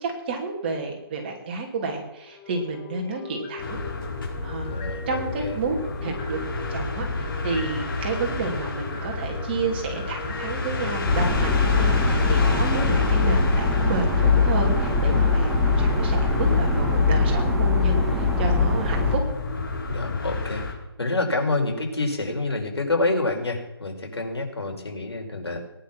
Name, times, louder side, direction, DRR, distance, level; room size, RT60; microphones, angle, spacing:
voice 1, 0.0-3.8 4.4-4.7 5.1-6.4 6.7-19.2, right 4 dB, 25° right, 2 dB, 2.9 m, -30 dB
sound 1, 2.2-14.3, left 3 dB, 20° left, 2.0 m, -42 dB
sound 2, 3.6-20.7, left 3 dB, 55° left, 6.5 m, -31 dB
voice 2, 4.6-5.5 15.1-15.3 19.9-20.6 21.0-25.6, left 2 dB, 90° left, 2 dB, 5.3 m, -27 dB
sound 3, 11.1-19.2, left 4 dB, 5° right, 1.8 m, -21 dB
18.5 x 10.5 x 6.1 m, 1.0 s
hypercardioid pair, 170°, 13 cm